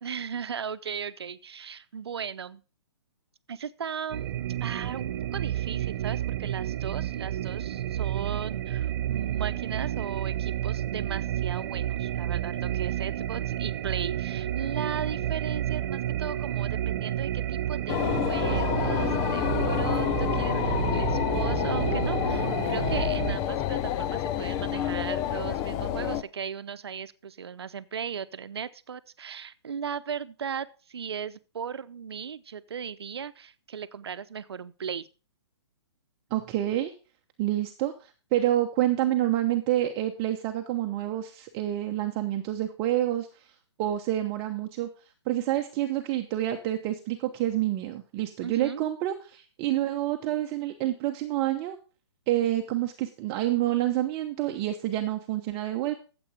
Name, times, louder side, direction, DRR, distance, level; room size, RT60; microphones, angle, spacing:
voice 1, 0.0-2.6 3.5-4.3 4.6-35.1 48.4-48.8, right 7 dB, 70° right, 15 dB, 0.9 m, -37 dB
sound 1, 4.1-23.4, right 12 dB, 50° right, 1.1 m, -30 dB
sound 2, 17.9-26.2, left 11 dB, 25° left, 0.7 m, -28 dB
voice 2, 36.3-36.9 37.4-43.5 43.8-44.9 45.3-51.8 52.3-55.9, right 13 dB, 25° right, 5 dB, 1.0 m, -28 dB
13.5 x 8.0 x 5.0 m, 0.35 s
hypercardioid pair, 135°, 14 cm